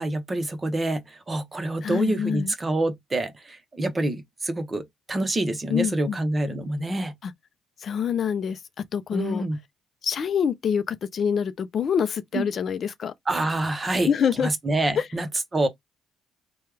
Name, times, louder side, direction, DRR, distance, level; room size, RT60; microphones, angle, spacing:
voice 1, 0.0-7.1 9.1-9.6 12.3-12.5 13.3-14.1 14.4-15.7, right 2 dB, 25° right, 0.9 m, -26 dB
voice 2, 1.8-2.5 5.7-6.2 7.2-7.3 7.8-9.4 10.0-13.1 14.1-14.5 15.0-15.1, left 7 dB, 50° left, 0.4 m, -26 dB
3.2 x 2.2 x 3.3 m
cardioid pair, 90°, 0 cm